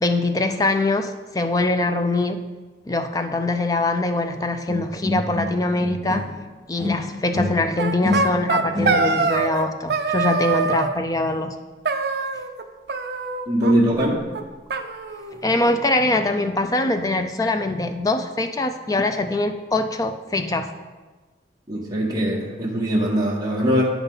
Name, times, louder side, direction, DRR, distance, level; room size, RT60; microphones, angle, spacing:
voice 1, 0.0-2.4 2.9-6.2 6.7-11.5 15.4-20.7, left 2 dB, 20° left, 7 dB, 0.4 m, -23 dB
sound 1, 4.7-6.5 6.8-9.4, left 2 dB, ahead, 1.4 m, -28 dB
sound 2, 7.8-9.6 9.9-10.9 11.8-12.6 12.9-13.7 14.0-14.1 14.3-14.4 14.7-15.7, right 4 dB, 60° right, 0.5 m, -24 dB
voice 2, 13.5-14.2 21.7-23.8, equal, 20° right, -3 dB, 1.4 m, -21 dB
9.0 x 4.0 x 5.5 m, 1.3 s
head